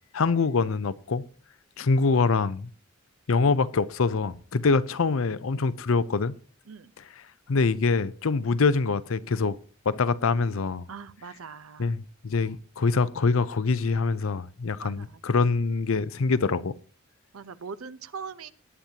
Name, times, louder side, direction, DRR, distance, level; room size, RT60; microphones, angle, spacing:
voice 1, 0.1-1.2 1.8-2.7 3.3-6.3 7.5-9.6 9.9-10.9 11.8-16.7, left 4 dB, 70° left, 0.6 m, -24 dB
voice 2, 10.9-11.9 12.3-12.6 14.8-15.2 17.3-18.5, right 5 dB, 85° right, 0.7 m, -41 dB
19.5 x 8.9 x 2.9 m
head